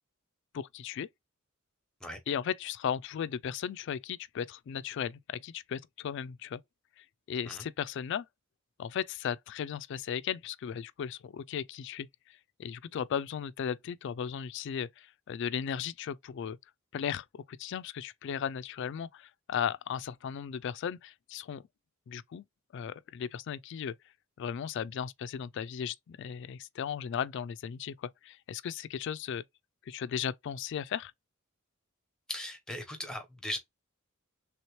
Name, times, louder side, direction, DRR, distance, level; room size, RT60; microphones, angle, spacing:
voice 1, 0.5-1.1 2.3-6.6 7.0-8.3 8.8-16.6 16.9-21.6 22.1-22.4 22.7-23.9 24.4-29.4 29.9-31.1, left 8 dB, 60° left, 0.3 m, -36 dB
voice 2, 32.3-33.6, left 1 dB, 5° left, 0.9 m, -38 dB
3.4 x 2.9 x 2.9 m
head